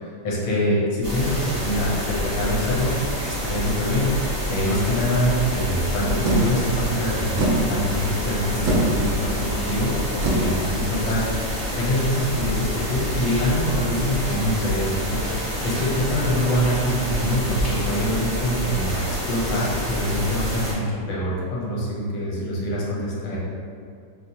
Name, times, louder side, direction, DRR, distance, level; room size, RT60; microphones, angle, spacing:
voice 1, 0.2-4.1 4.5-23.4, equal, 75° left, -6 dB, 1.5 m, -25 dB
sound 1, 1.0-20.7, left 1 dB, 50° right, 0.4 m, -28 dB
sound 2, 6.2-11.8, right 2 dB, 70° right, 1.0 m, -26 dB
4.5 x 2.1 x 2.7 m, 2.2 s
omnidirectional pair, 2.2 m